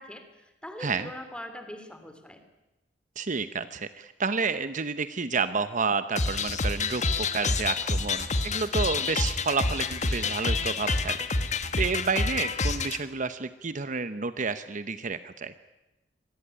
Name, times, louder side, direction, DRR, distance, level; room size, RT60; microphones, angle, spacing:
voice 1, 0.0-2.4, left 1 dB, 5° left, 7 dB, 3.1 m, -42 dB
voice 2, 0.8-1.1 3.2-11.2 11.4-15.5, right 4 dB, 45° right, 12 dB, 0.9 m, -30 dB
sound 1, 6.2-13.0, left 3 dB, 40° left, 1.6 m, -28 dB
25.0 x 18.5 x 10.0 m, 0.99 s
head